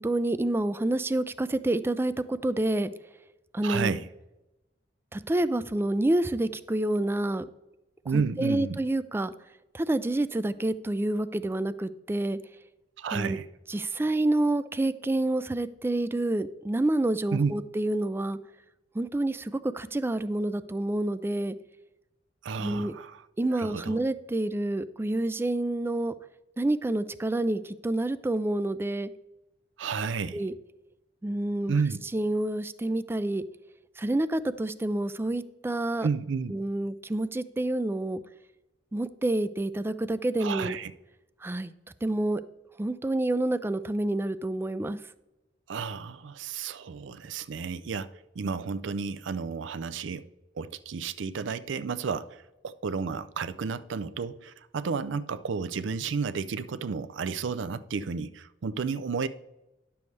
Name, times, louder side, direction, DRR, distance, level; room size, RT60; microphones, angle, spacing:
voice 1, 0.0-2.9 3.5-3.9 5.1-7.5 8.1-9.3 9.7-12.4 13.1-13.4 13.7-18.4 18.9-21.6 22.6-22.9 23.4-26.1 26.6-29.1 30.3-30.5 31.2-31.8 32.1-33.4 34.0-36.1 36.5-38.2 38.9-40.8 41.4-41.7 42.0-42.4 42.8-45.0, right 1 dB, 15° right, 0.3 m, -28 dB
voice 2, 3.6-4.1 8.0-8.8 13.0-13.5 17.3-17.5 22.4-23.3 23.5-24.0 29.8-30.4 31.7-32.0 36.0-36.5 40.4-40.9 45.7-50.2 50.6-59.3, right 5 dB, 85° right, 0.5 m, -32 dB
10.5 x 6.9 x 3.2 m
head